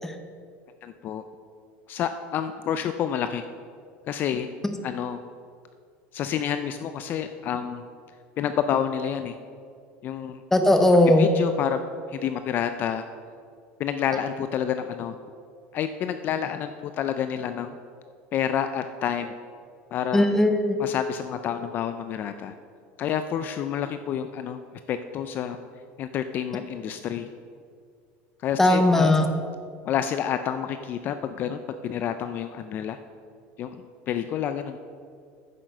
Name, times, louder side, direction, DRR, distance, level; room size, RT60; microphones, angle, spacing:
voice 1, 0.8-1.2 1.9-3.5 4.1-4.5 4.8-5.2 6.1-7.8 8.4-9.3 10.0-10.4 11.2-11.8 12.1-13.0 13.8-15.1 15.7-17.7 18.3-19.3 19.9-20.3 20.8-22.5 23.0-24.6 24.9-25.6 26.0-27.3 28.4-29.3 29.8-33.0 33.6-34.8, left 9 dB, 40° left, 9 dB, 0.4 m, -29 dB
voice 2, 10.5-11.3 20.1-20.8 28.6-29.2, left 1 dB, 5° left, 6 dB, 0.9 m, -18 dB
9.5 x 7.4 x 6.6 m, 2.3 s
supercardioid pair, 145°, 5 cm